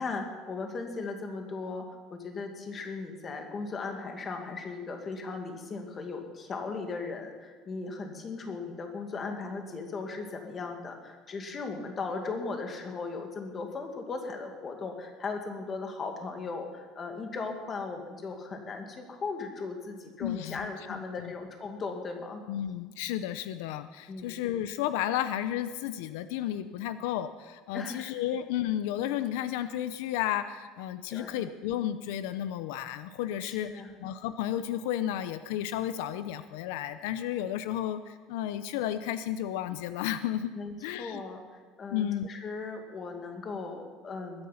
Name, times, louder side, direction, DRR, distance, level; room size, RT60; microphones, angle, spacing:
voice 1, 0.0-22.4 24.1-24.4 27.7-28.1 31.1-31.5 33.4-33.9 40.5-44.5, left 4 dB, 25° left, 4 dB, 2.0 m, -37 dB
voice 2, 20.2-21.3 22.5-33.7 34.0-40.5 40.8-41.2 41.9-42.3, left 11 dB, 85° left, 12 dB, 0.6 m, -32 dB
21.0 x 9.7 x 5.7 m, 1.4 s
cardioid pair, 165°, 0 cm